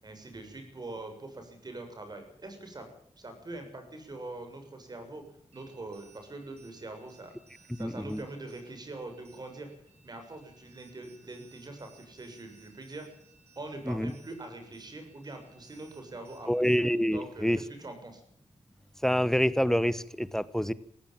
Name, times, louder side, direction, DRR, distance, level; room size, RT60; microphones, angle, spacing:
voice 1, 0.0-2.9 3.2-5.2 5.5-9.7 10.0-13.1 13.6-16.7 17.1-18.2, right 2 dB, 35° right, 6 dB, 7.2 m, -43 dB
sound 1, 5.5-17.1, right 5 dB, 65° right, 7.1 m, -62 dB
voice 2, 7.8-8.2 13.9-14.1 16.5-17.6 19.0-20.7, equal, 5° left, 17 dB, 1.1 m, -27 dB
18.5 x 16.0 x 8.8 m, 0.63 s
cardioid pair, 90°, 12 cm